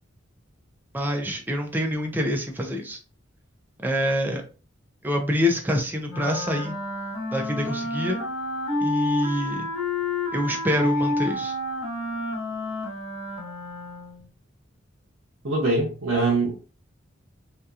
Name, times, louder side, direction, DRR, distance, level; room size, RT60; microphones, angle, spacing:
voice 1, 0.9-3.0 3.8-4.4 5.0-6.8 7.3-8.2 8.8-9.7 10.3-11.5, equal, 10° right, 0.4 m, -26 dB
Wind instrument woodwind instrument, 6.1-14.3, left 2 dB, 80° left, 1.1 m, -29 dB
voice 2, 15.4-16.5, right 2 dB, 80° right, 0.6 m, -23 dB
2.7 x 2.2 x 2.3 m
head